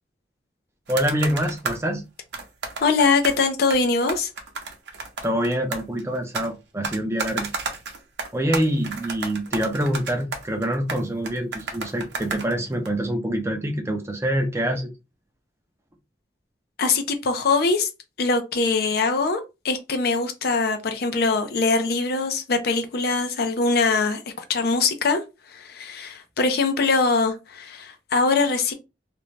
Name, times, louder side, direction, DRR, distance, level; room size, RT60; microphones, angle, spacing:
voice 1, 0.9-2.0 5.2-7.5 8.3-14.9, equal, 15° right, 0.5 m, -25 dB
sound 1, 0.9-1.9 2.3-3.4 3.7-6.5 6.8-12.9, right 4 dB, 70° right, 0.7 m, -32 dB
voice 2, 2.8-4.3 16.8-17.9 18.2-25.2 25.5-28.7, left 4 dB, 60° left, 0.5 m, -22 dB
2.5 x 2.1 x 3.1 m
head